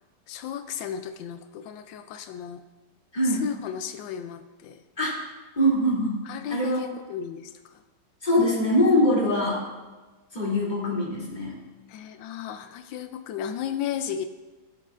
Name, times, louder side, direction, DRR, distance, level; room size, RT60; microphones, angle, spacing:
voice 1, 0.3-2.6 3.3-4.8 6.3-7.5 11.9-14.3, left 8 dB, 90° left, 9 dB, 1.3 m, -34 dB
voice 2, 3.1-3.5 5.0-5.1 5.6-6.8 8.2-9.6 10.3-11.6, left 1 dB, 25° left, -6 dB, 3.0 m, -23 dB
17.0 x 7.7 x 2.5 m, 1.2 s
omnidirectional pair, 2.0 m